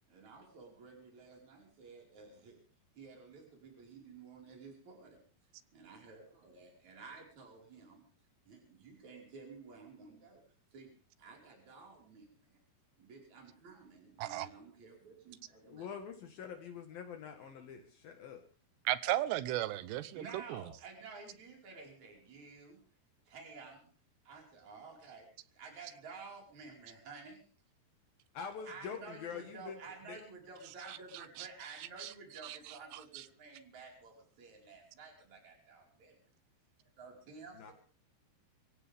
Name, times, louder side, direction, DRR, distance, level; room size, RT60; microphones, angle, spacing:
voice 1, 0.1-2.6 3.0-5.2 5.7-8.1 8.5-10.4 10.7-10.9 11.2-12.6 13.0-15.9 17.4-17.5 17.8-17.9 20.1-22.8 23.3-23.9 24.2-27.4 28.7-36.2 37.0-37.7, right 4 dB, 45° right, 0 dB, 6.1 m, -52 dB
voice 2, 14.2-14.5 18.8-20.6 30.9-31.0 31.4-31.5 32.0-32.1 32.4-33.2, right 14 dB, 85° right, 15 dB, 3.1 m, -36 dB
voice 3, 15.6-18.4 28.3-29.8 30.1-30.2 37.5-37.7, left 7 dB, 65° left, 5 dB, 3.3 m, -45 dB
24.5 x 16.0 x 3.6 m, 0.40 s
omnidirectional pair, 4.8 m